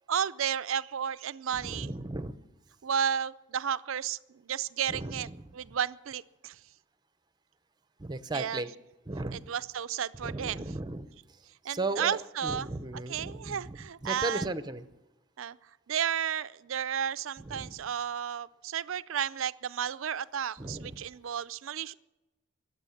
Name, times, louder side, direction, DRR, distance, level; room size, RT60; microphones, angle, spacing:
voice 1, 0.1-1.9 2.8-5.3 5.5-6.6 8.3-8.7 9.3-10.6 11.6-12.7 13.1-14.5 15.4-15.6 15.9-21.9, right 8 dB, 75° right, 17 dB, 0.5 m, -33 dB
voice 2, 1.6-2.4 4.9-5.4 8.0-8.7 9.1-9.5 10.2-11.1 11.6-14.8 17.4-17.7 20.6-21.0, right 2 dB, 20° right, 12 dB, 0.7 m, -36 dB
22.5 x 8.2 x 7.1 m, 1.0 s
head